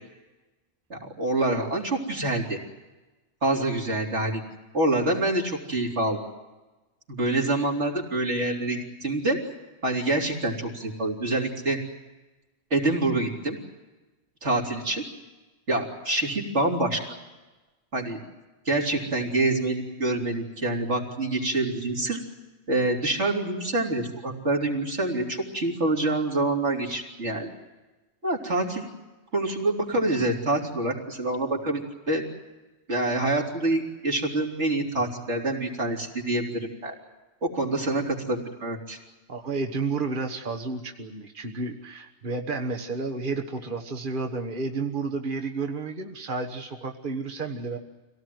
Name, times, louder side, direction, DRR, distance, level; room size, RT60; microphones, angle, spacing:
voice 1, 0.9-2.6 3.4-4.4 4.7-6.2 7.1-9.4 9.8-11.8 12.7-13.6 14.4-15.0 15.7-17.0 17.9-18.2 18.7-22.2 22.7-27.5 28.2-28.9 29.3-32.2 32.9-36.9 37.4-39.0, right 2 dB, 85° right, 0 dB, 4.0 m, -26 dB
voice 2, 39.3-47.8, right 4 dB, 50° right, 3 dB, 1.6 m, -31 dB
26.0 x 17.5 x 9.4 m, 1.2 s
omnidirectional pair, 1.2 m